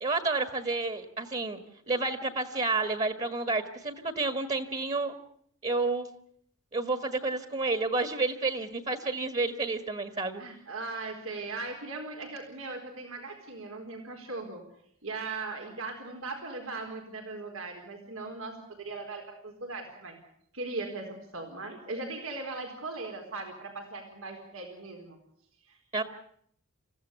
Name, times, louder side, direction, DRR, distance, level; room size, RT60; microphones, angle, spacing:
voice 1, 0.0-1.6 1.9-5.1 5.6-6.1 6.7-10.4 25.9-26.0, right 3 dB, 35° right, 9 dB, 1.8 m, -30 dB
voice 2, 10.4-14.6 15.0-20.2 20.5-25.2 25.7-25.8, right 3 dB, 85° right, 4 dB, 4.4 m, -39 dB
28.5 x 15.5 x 8.3 m, 0.68 s
head